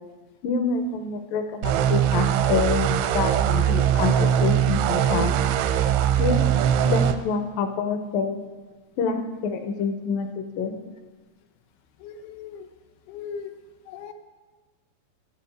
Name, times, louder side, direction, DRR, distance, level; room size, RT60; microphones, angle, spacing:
voice 1, 0.4-5.4 6.2-8.4 9.0-10.8, left 5 dB, 65° left, 6 dB, 2.4 m, -27 dB
sound 1, 1.6-7.2, right 10 dB, 90° right, 3.2 m, -21 dB
voice 2, 12.0-12.7 13.1-13.5 13.9-14.1, left 6 dB, 85° left, 6 dB, 3.5 m, -38 dB
13.0 x 9.7 x 8.9 m, 1.3 s
omnidirectional pair, 5.2 m